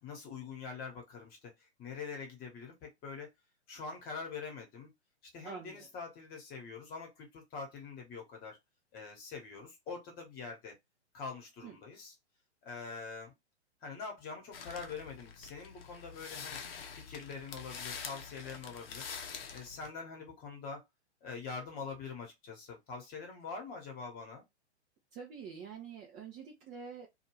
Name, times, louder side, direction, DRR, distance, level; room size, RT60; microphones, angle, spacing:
voice 1, 0.0-3.3 3.7-4.9 5.3-8.6 8.9-10.7 11.1-12.2 12.6-13.3 13.8-16.6 16.9-19.1 19.5-20.8 21.2-24.4, left 5 dB, 25° left, 1.2 m, -44 dB
voice 2, 5.4-5.9 11.6-11.8 25.1-27.1, right 6 dB, 20° right, 0.6 m, -46 dB
sound 1, 14.5-19.9, left 6 dB, 55° left, 0.7 m, -46 dB
2.6 x 2.4 x 3.1 m
figure-of-eight pair, 115°, 34 cm